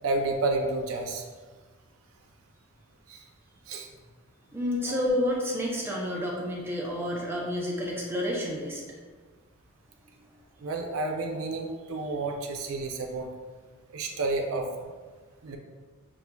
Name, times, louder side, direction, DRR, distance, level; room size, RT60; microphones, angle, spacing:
voice 1, 0.0-1.2 3.1-3.2 3.7-3.9 4.8-5.0 10.6-13.3 13.9-14.9 15.4-15.6, right 2 dB, 85° right, 3 dB, 0.5 m, -30 dB
voice 2, 4.5-8.8 10.2-10.3, left 1 dB, 10° right, -4 dB, 0.6 m, -30 dB
6.9 x 2.4 x 2.3 m, 1.4 s
head